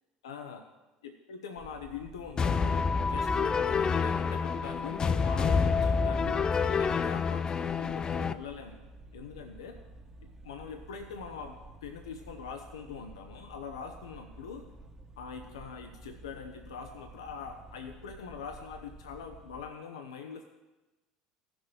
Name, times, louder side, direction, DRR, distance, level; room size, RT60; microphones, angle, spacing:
voice 1, 0.2-0.6 1.0-2.8 3.1-8.8 9.1-9.8 10.4-14.7 15.2-20.4, left 6 dB, 80° left, 5 dB, 0.7 m, -43 dB
sound 1, 1.6-19.7, right 2 dB, 20° right, 1.3 m, -51 dB
sound 2, 2.4-8.3, left 5 dB, 30° left, 0.4 m, -28 dB
15.5 x 6.2 x 3.3 m, 1.1 s
hypercardioid pair, 75°, 3 cm